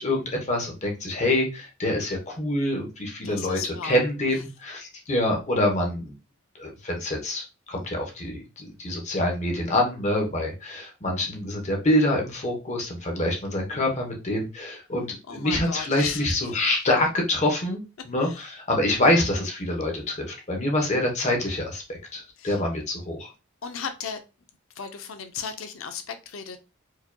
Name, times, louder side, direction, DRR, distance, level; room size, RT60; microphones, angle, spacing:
voice 1, 0.0-6.1 6.5-23.3, left 1 dB, 35° left, 0.9 m, -26 dB
voice 2, 3.2-4.0 4.3-4.4 15.3-16.6 18.2-18.5 22.4-22.6 23.6-24.2 24.7-26.6, left 6 dB, 75° left, 0.6 m, -36 dB
4.7 x 2.8 x 2.2 m
head